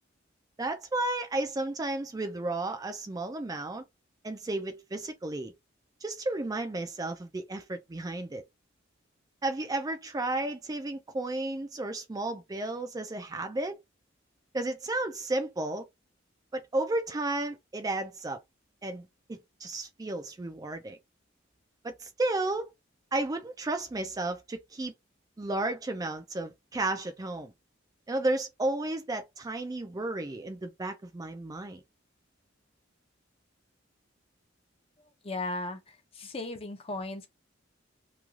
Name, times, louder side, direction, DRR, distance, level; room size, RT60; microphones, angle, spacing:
voice 1, 0.6-3.8 4.2-5.5 6.0-8.4 9.4-13.8 14.5-15.9 16.5-18.4 18.8-21.0 21.8-22.7 23.1-24.9 25.4-27.5 28.1-31.8, right 2 dB, 20° right, 0.4 m, -33 dB
voice 2, 35.2-35.8 36.1-37.3, left 2 dB, 30° left, 0.6 m, -35 dB
3.1 x 2.3 x 2.3 m
head